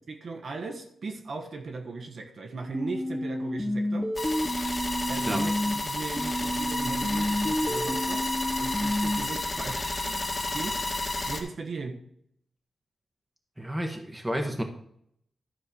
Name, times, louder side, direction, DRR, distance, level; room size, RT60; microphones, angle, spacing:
voice 1, 0.1-4.1 5.0-8.3 8.6-10.8 11.2-12.0, right 4 dB, 60° right, 3 dB, 1.2 m, -38 dB
sound 1, 2.7-5.7 6.2-9.2, left 1 dB, 15° left, 1.1 m, -30 dB
sound 2, 4.1-11.4, left 2 dB, 35° left, 2.3 m, -31 dB
voice 2, 13.6-14.6, equal, 10° right, 2 dB, 1.3 m, -31 dB
12.5 x 4.3 x 6.8 m, 0.68 s
cardioid pair, 95°, 0 cm